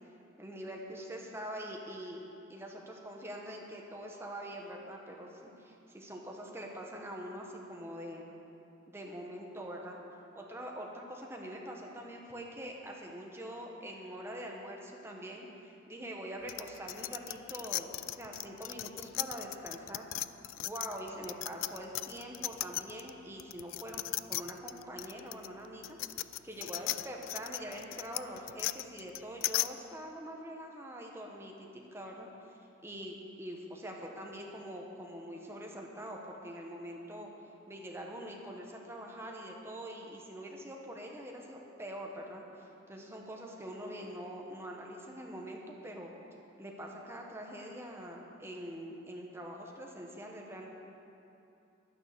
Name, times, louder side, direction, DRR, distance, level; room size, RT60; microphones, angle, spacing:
voice 1, 0.4-2.2 2.5-8.3 8.9-10.0 10.3-20.1 20.6-32.3 32.8-37.3 37.7-42.4 42.9-46.1 46.6-50.7, equal, 15° right, 0 dB, 1.3 m, -44 dB
sound 1, 16.5-23.1 23.4-29.7, left 16 dB, 80° left, 0.3 m, -37 dB
11.5 x 9.8 x 6.8 m, 2.8 s
head